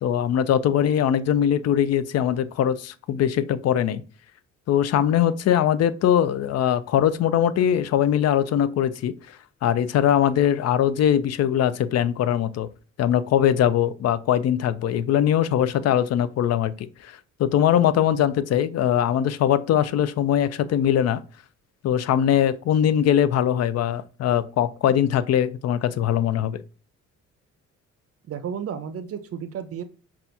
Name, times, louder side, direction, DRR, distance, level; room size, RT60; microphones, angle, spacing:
voice 1, 0.0-4.0 4.7-9.1 9.6-12.7 13.0-17.1 17.4-21.2 21.8-26.6, left 10 dB, 55° left, 0.4 m, -21 dB
voice 2, 28.3-29.8, right 8 dB, 50° right, 0.5 m, -32 dB
5.6 x 2.4 x 2.6 m
cardioid pair, 90°, 30 cm